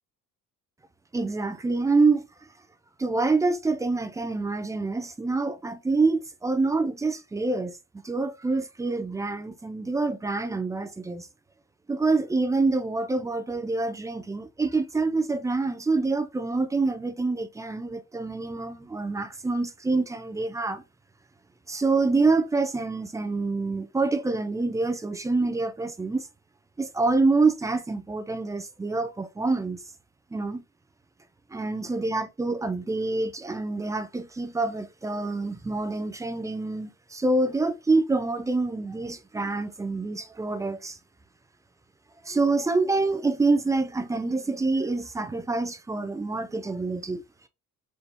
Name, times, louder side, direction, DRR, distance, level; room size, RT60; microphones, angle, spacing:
voice 1, 1.1-2.2 3.0-7.8 8.0-11.3 11.9-20.8 21.7-26.3 26.8-29.8 30.3-30.6 31.5-41.0 42.2-47.2, right 3 dB, 10° right, 0.3 m, -26 dB
4.0 x 2.9 x 3.4 m
cardioid pair, 145°, 33 cm